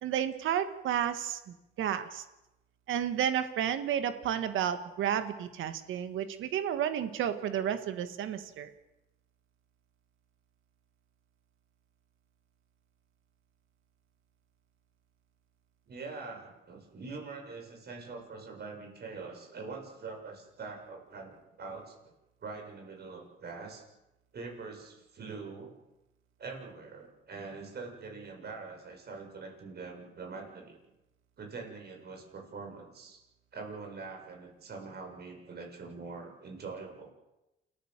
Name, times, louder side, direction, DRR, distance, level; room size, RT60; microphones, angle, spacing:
voice 1, 0.0-2.2 2.9-8.7, right 9 dB, 80° right, 9 dB, 2.0 m, -32 dB
voice 2, 15.9-22.0 22.4-23.8 24.3-25.7 26.4-30.7 31.4-33.2 33.5-37.1, right 4 dB, 55° right, 3 dB, 7.3 m, -44 dB
28.5 x 15.0 x 7.6 m, 0.96 s
cardioid pair, 90°, 20 cm